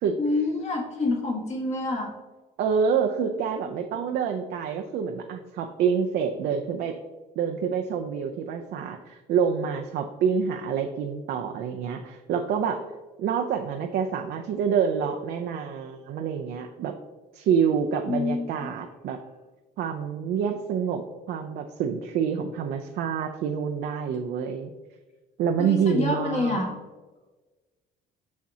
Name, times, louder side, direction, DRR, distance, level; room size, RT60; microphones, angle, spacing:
voice 1, 0.2-2.1 18.1-18.8 25.6-26.7, left 2 dB, 40° left, 1 dB, 1.5 m, -27 dB
voice 2, 2.6-6.9 7.4-12.8 13.2-17.0 17.3-19.2 19.8-21.0 21.3-24.7 25.4-26.6, right 7 dB, 70° right, 4 dB, 0.5 m, -27 dB
6.3 x 5.9 x 2.7 m, 1.3 s
cardioid pair, 110°, 17 cm